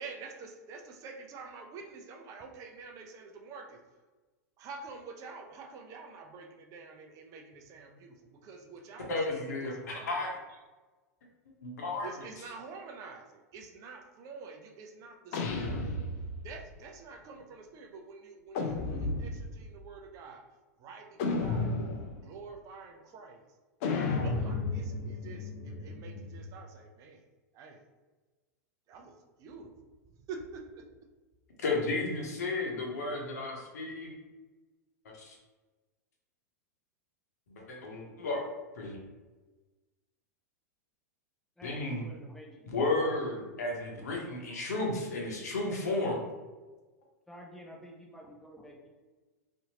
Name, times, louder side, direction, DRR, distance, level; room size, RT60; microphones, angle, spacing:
voice 1, 0.0-3.8 4.6-10.4 12.0-16.0 16.4-21.7 22.2-23.4 24.0-27.3 27.5-27.8 28.9-29.7 30.1-30.9, right 4 dB, 35° right, 3 dB, 0.4 m, -47 dB
voice 2, 9.1-10.3 11.6-12.1 31.6-34.1 35.1-35.4 37.5-38.4 38.7-39.0 41.6-42.0 42.7-46.2, left 2 dB, 70° left, -1 dB, 0.8 m, -33 dB
sound 1, 15.3-16.6 18.5-19.6 21.2-22.3 23.8-26.5, left 3 dB, 55° left, 0.4 m, -33 dB
voice 3, 41.6-43.5 47.3-48.9, equal, 5° left, -1 dB, 0.6 m, -50 dB
2.7 x 2.6 x 2.8 m, 1.2 s
hypercardioid pair, 100°, 9 cm